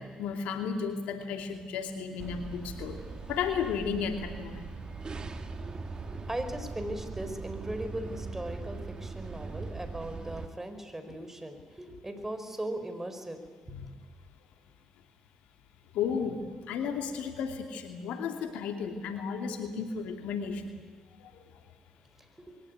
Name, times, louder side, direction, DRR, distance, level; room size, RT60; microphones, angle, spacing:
voice 1, 0.0-3.0 3.3-4.7 13.7-13.9 15.9-16.4 16.7-20.8 21.2-21.3, left 6 dB, 75° left, 6 dB, 2.5 m, -33 dB
sound 1, 2.2-10.5, right 4 dB, 40° right, 2.5 m, -40 dB
voice 2, 6.3-13.4 13.7-13.8 22.4-22.5, right 1 dB, 15° right, 8 dB, 4.5 m, -38 dB
22.0 x 18.0 x 9.5 m, 1.5 s
hypercardioid pair, 50°, 2 cm